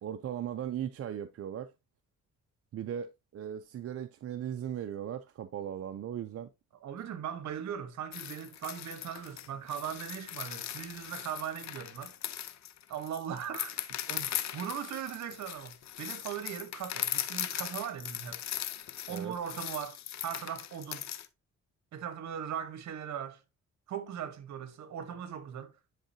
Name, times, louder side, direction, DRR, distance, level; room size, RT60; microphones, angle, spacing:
voice 1, 0.0-1.7 2.7-6.5 19.1-19.4, right 9 dB, 50° right, 0.5 m, -38 dB
voice 2, 6.8-12.2 12.9-18.4 19.1-21.1 21.9-23.4 23.9-25.7, right 8 dB, 65° right, 1.1 m, -39 dB
sound 1, 8.1-21.3, left 11 dB, 65° left, 0.7 m, -39 dB
10.5 x 3.7 x 2.7 m
cardioid pair, 90°, 30 cm